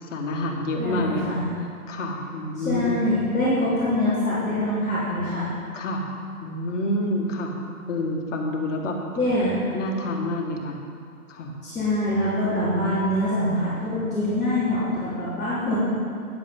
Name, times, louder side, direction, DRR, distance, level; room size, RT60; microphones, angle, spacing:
voice 1, 0.0-1.4 1.9-3.1 5.7-6.0 6.4-7.5 7.9-9.0 9.7-10.8 11.3-11.5, left 1 dB, 55° left, 1 dB, 1.7 m, -28 dB
voice 2, 0.8-1.4 2.6-5.5 9.1-9.7 11.6-15.8, left 1 dB, ahead, -28 dB, 0.4 m, -24 dB
9.8 x 7.9 x 5.4 m, 2.4 s
hypercardioid pair, 150°, 45 cm